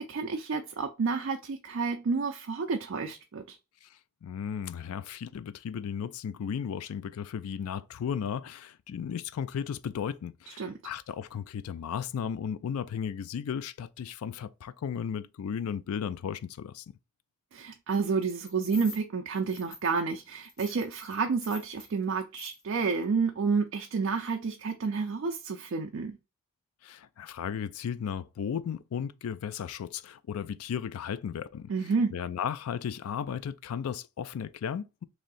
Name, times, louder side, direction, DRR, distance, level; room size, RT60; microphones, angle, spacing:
voice 1, 0.0-3.6 10.6-10.7 17.5-26.2 31.7-32.1, right 4 dB, 60° right, 0.4 m, -30 dB
voice 2, 4.2-16.8 26.8-31.7 32.1-35.0, left 7 dB, 85° left, 0.3 m, -35 dB
sound 1, 18.2-19.0 19.5-20.2 20.4-21.9 22.3-22.6 22.9-23.0, left 4 dB, 65° left, 1.3 m, -47 dB
3.1 x 2.7 x 3.9 m
head